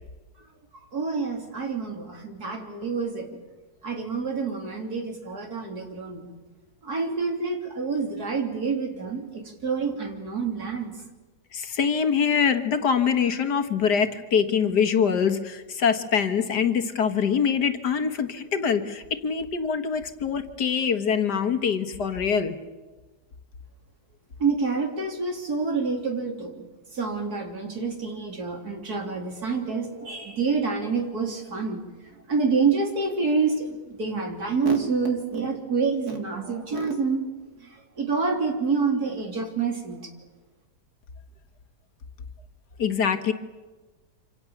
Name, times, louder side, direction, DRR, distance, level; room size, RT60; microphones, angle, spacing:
voice 1, 0.9-3.4 3.8-6.3 6.8-10.9 24.4-26.6 26.9-31.8 32.3-37.2 38.0-40.0, right 4 dB, 65° right, 3 dB, 3.9 m, -27 dB
voice 2, 11.5-22.6 42.8-43.3, left 7 dB, 75° left, 9 dB, 2.2 m, -24 dB
26.5 x 26.5 x 7.2 m, 1.2 s
omnidirectional pair, 1.8 m